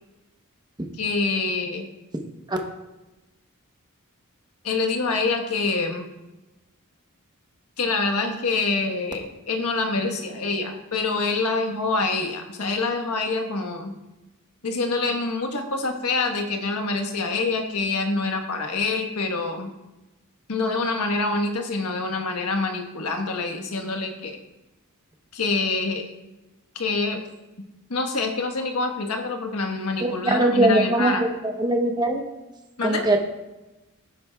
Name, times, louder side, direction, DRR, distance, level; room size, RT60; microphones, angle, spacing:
voice 1, 1.0-1.9 4.6-6.1 7.8-13.9 14.6-19.7 20.5-24.4 25.3-26.0 26.7-27.2 27.9-31.2 32.8-33.1, left 3 dB, 85° left, 4 dB, 1.3 m, -26 dB
voice 2, 30.0-32.2 32.8-33.2, right 1 dB, 20° right, 3 dB, 0.9 m, -21 dB
15.0 x 7.5 x 2.4 m, 1.0 s
head